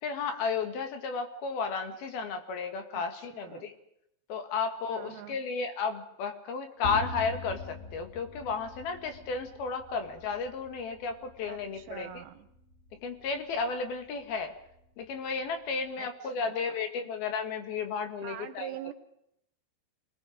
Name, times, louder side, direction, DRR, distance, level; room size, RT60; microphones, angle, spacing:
voice 1, 0.0-3.7 4.3-12.1 12.9-14.5 15.0-18.8, left 5 dB, 65° left, 6 dB, 3.7 m, -33 dB
voice 2, 2.9-3.7 4.9-5.4 11.5-12.5 16.0-17.1 18.2-18.9, right 12 dB, 90° right, 10 dB, 3.7 m, -45 dB
sound 1, 6.8-15.9, left 2 dB, 35° left, 1.2 m, -44 dB
27.5 x 20.5 x 5.1 m, 0.75 s
omnidirectional pair, 4.8 m